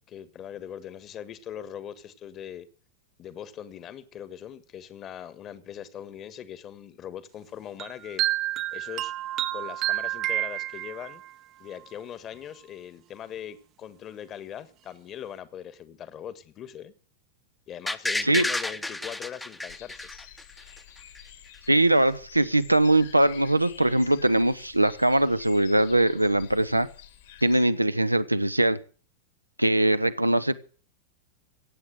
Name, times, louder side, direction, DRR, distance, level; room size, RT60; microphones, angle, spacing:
voice 1, 0.1-2.7 3.2-8.2 8.7-9.1 9.5-11.2 11.6-16.9 17.7-20.0, left 9 dB, 30° left, 1.5 m, -41 dB
sound 1, 7.8-11.3, right 14 dB, 35° right, 0.8 m, -29 dB
sound 2, 17.9-20.8 21.1-21.2, left 2 dB, 5° left, 0.9 m, -30 dB
sound 3, 19.7-27.7, left 10 dB, 55° left, 2.4 m, -49 dB
voice 2, 21.7-26.9 27.4-28.8 29.6-30.6, right 1 dB, 85° right, 0.8 m, -21 dB
15.5 x 8.5 x 7.7 m
figure-of-eight pair, 90°, 0 cm